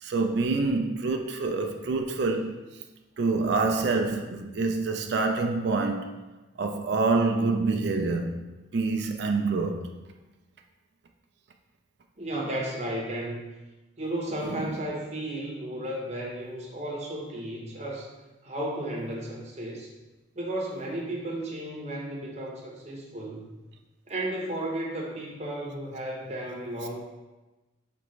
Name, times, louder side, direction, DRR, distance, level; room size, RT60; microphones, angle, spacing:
voice 1, 0.0-2.8 3.2-6.1 6.6-8.4 8.7-9.9 14.5-14.6, right 3 dB, 60° right, 0.4 m, -26 dB
voice 2, 12.2-13.4 14.0-18.1 18.4-19.9 20.3-23.5 24.1-27.0, right 1 dB, 35° right, 0.8 m, -34 dB
5.1 x 3.3 x 3.1 m
head